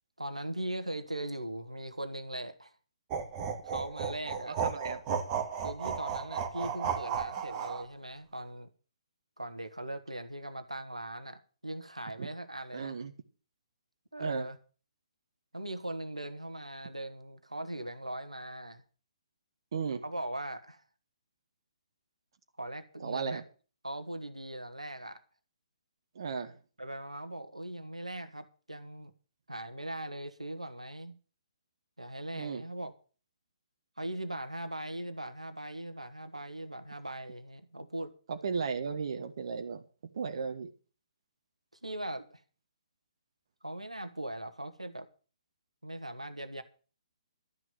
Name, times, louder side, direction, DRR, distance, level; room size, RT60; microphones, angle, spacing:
voice 1, 0.2-2.7 3.6-4.6 5.6-8.7 9.4-13.0 14.1-14.6 15.5-18.8 20.0-20.8 22.6-23.4 23.8-25.2 26.8-29.1 29.5-31.2 32.0-32.9 34.0-38.1 41.8-42.4 43.6-45.1 45.8-46.6, right 1 dB, 85° right, 1.5 m, -40 dB
sound 1, 3.1-7.8, right 7 dB, 25° right, 2.0 m, -34 dB
voice 2, 4.5-5.0 12.2-12.3 12.7-13.1 14.2-14.5 19.7-20.0 23.0-23.4 26.1-26.6 32.3-32.6 38.3-39.8 40.1-40.7, right 5 dB, 50° right, 1.5 m, -35 dB
12.5 x 6.2 x 9.3 m
figure-of-eight pair, 130°, 3 cm